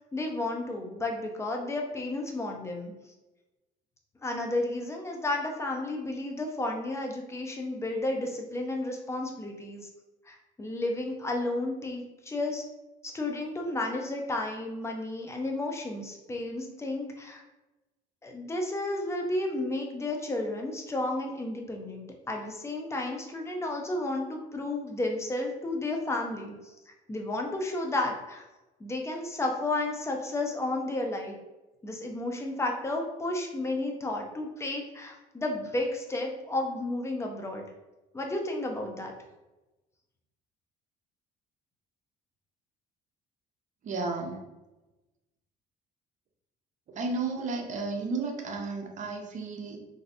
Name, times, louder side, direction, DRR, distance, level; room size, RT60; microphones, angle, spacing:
voice 1, 0.1-2.9 4.2-9.9 10.3-12.6 13.0-17.4 18.2-28.5 28.8-31.4 31.8-37.6 38.1-39.1, left 2 dB, 15° left, 2 dB, 0.6 m, -32 dB
voice 2, 43.8-44.4 47.0-49.8, right 3 dB, 45° right, 3 dB, 0.6 m, -33 dB
3.1 x 2.6 x 2.7 m, 1.1 s
cardioid pair, 110°, 17 cm